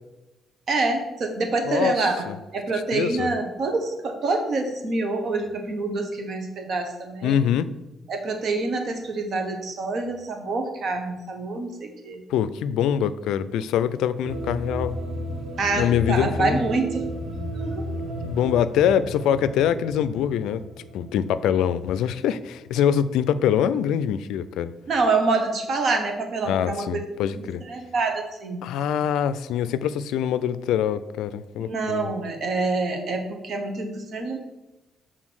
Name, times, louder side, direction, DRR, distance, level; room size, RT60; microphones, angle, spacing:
voice 1, 0.7-2.3 2.5-7.4 8.1-12.2 15.6-17.1 17.6-17.9 24.9-27.0 27.3-28.6 31.6-34.4, right 3 dB, 60° right, 1.3 m, -26 dB
voice 2, 1.7-2.4 2.7-3.3 7.2-7.7 12.3-15.0 15.7-16.6 18.2-20.6 20.9-24.7 26.4-27.6 28.6-32.1, left 9 dB, 90° left, 0.3 m, -24 dB
sound 1, 14.2-22.4, equal, 80° right, 2.6 m, -33 dB
6.2 x 3.8 x 6.2 m
cardioid pair, 90°, 0 cm